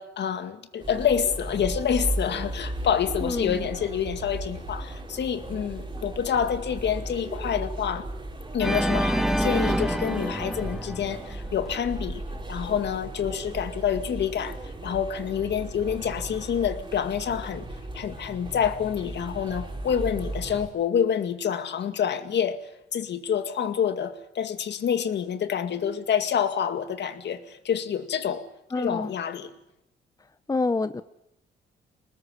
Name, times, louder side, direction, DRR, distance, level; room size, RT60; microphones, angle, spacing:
voice 1, 0.0-8.1 8.5-12.2 12.5-17.7 17.9-28.5 28.8-29.5, left 8 dB, 60° left, 2.1 m, -27 dB
sound 1, 0.8-20.7, right 1 dB, 25° right, 4.7 m, -36 dB
voice 2, 3.2-3.7 28.7-29.1 30.5-31.0, left 3 dB, 15° left, 0.9 m, -27 dB
Organ, 8.6-11.7, equal, ahead, 1.9 m, -27 dB
23.5 x 20.0 x 9.9 m
cardioid pair, 90°, 20 cm